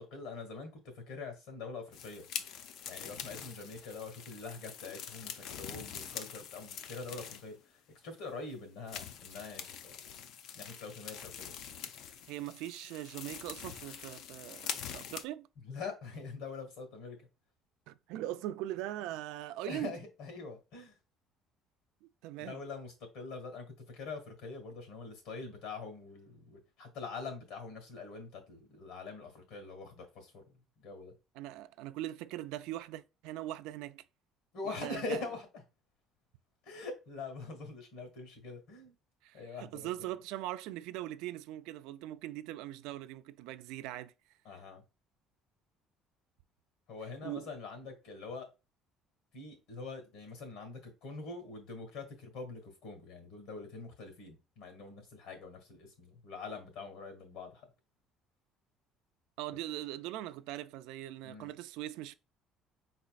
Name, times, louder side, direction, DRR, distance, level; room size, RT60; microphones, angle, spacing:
voice 1, 0.0-2.3 2.8-10.0 10.5-11.5 15.6-17.3 19.6-21.0 22.4-30.4 30.8-31.1 34.5-35.5 36.6-38.9 39.3-39.9 44.5-44.8 46.9-48.5 49.3-57.7 61.2-61.5, left 4 dB, 75° left, 1.7 m, -44 dB
sound 1, 1.9-7.6 8.1-8.2 8.9-15.2, left 8 dB, 60° left, 0.5 m, -44 dB
voice 2, 12.3-15.5 17.9-20.0 22.2-22.6 31.4-34.0 34.8-35.2 39.2-44.1 47.2-47.5 59.4-62.1, right 14 dB, 85° right, 0.3 m, -41 dB
4.9 x 4.2 x 2.4 m
cardioid pair, 160°, 0 cm